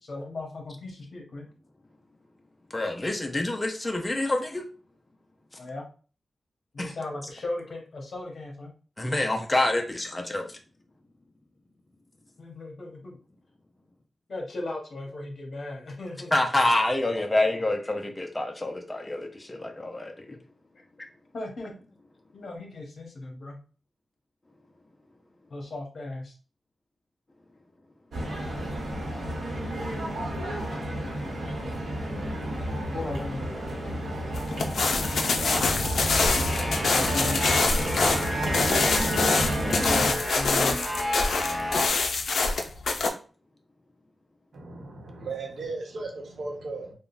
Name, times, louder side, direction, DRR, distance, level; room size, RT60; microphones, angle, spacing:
voice 1, 0.0-1.4 5.6-5.8 6.7-8.7 12.4-13.2 14.3-16.3 21.3-21.7 22.3-23.6 25.5-26.3 32.9-33.5 36.9-37.4 39.7-40.8, left 2 dB, 55° left, 1.0 m, -36 dB
voice 2, 2.7-4.6 6.8-6.9 9.0-10.6 16.3-20.3, left 2 dB, 20° left, 0.5 m, -27 dB
sound 1, 28.1-40.1, equal, 90° right, 1.0 m, -31 dB
sound 2, 34.3-43.1, left 3 dB, 75° left, 0.4 m, -25 dB
sound 3, 36.0-41.9, equal, 10° right, 1.0 m, -32 dB
voice 3, 44.5-46.9, right 3 dB, 70° right, 0.9 m, -36 dB
3.6 x 2.2 x 2.5 m
wide cardioid pair, 110°, 0 cm